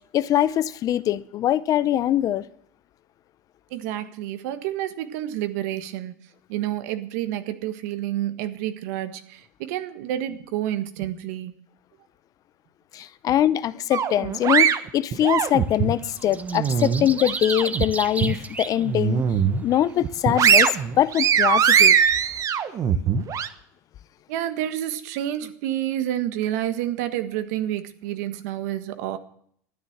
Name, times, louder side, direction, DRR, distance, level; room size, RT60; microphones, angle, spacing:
voice 1, 0.1-2.4 12.9-19.2 19.6-20.7 21.0-22.0, left 11 dB, 40° left, 0.7 m, -23 dB
voice 2, 3.7-6.1 6.5-11.5 24.3-29.2, right 12 dB, 70° right, 1.5 m, -29 dB
sound 1, 13.9-15.9 16.4-17.8 18.2-18.4 18.8-19.6 20.0-23.5, right 8 dB, 35° right, 1.1 m, -20 dB
sound 2, 15.4-22.4, right 4 dB, 15° right, 1.0 m, -36 dB
13.0 x 10.0 x 7.3 m
supercardioid pair, 110°, 9 cm